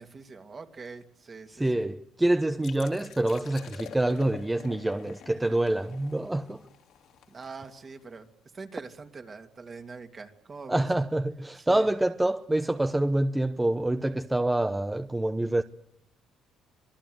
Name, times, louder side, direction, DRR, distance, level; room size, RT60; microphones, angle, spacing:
voice 1, 0.0-1.9 7.3-8.3 8.5-10.9 11.6-11.9, right 4 dB, 35° right, 2.6 m, -43 dB
voice 2, 1.5-6.6 10.7-15.6, right 1 dB, 10° right, 0.9 m, -26 dB
sound 1, 2.6-8.2, left 9 dB, 70° left, 3.0 m, -48 dB
26.0 x 20.5 x 8.0 m
cardioid pair, 100°, 0 cm